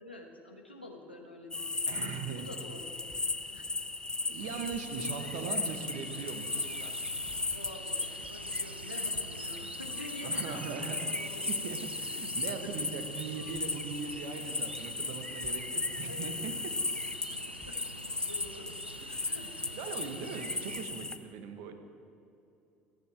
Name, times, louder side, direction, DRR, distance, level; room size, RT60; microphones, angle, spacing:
voice 1, 0.0-3.1 3.5-3.7 5.0-5.6 7.5-11.5 16.0-16.3 18.0-18.7 19.0-19.9 21.5-21.7, left 2 dB, 90° left, 1 dB, 1.4 m, -47 dB
sound 1, 1.5-21.2, left 3 dB, 15° left, 0.8 m, -36 dB
voice 2, 1.9-2.5 4.3-6.5 6.8-6.9 10.2-11.1 11.5-16.7 19.1-21.7, right 6 dB, 60° right, 7 dB, 1.4 m, -40 dB
sound 2, 4.4-20.9, right 5 dB, 85° right, 0.4 m, -48 dB
29.0 x 9.9 x 3.5 m, 2.8 s
figure-of-eight pair, 60°, 6 cm